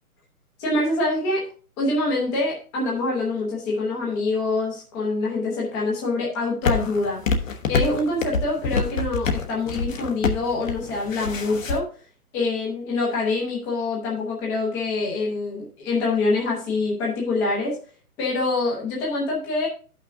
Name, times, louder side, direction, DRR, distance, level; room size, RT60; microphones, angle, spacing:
voice 1, 0.6-1.5 1.8-7.2 7.7-11.9 12.3-17.8 18.2-19.7, left 2 dB, 5° left, -4 dB, 0.7 m, -25 dB
sound 1, 6.6-11.8, left 4 dB, 60° left, 1.2 m, -25 dB
12.5 x 5.8 x 2.6 m, 0.38 s
hypercardioid pair, 160°, 44 cm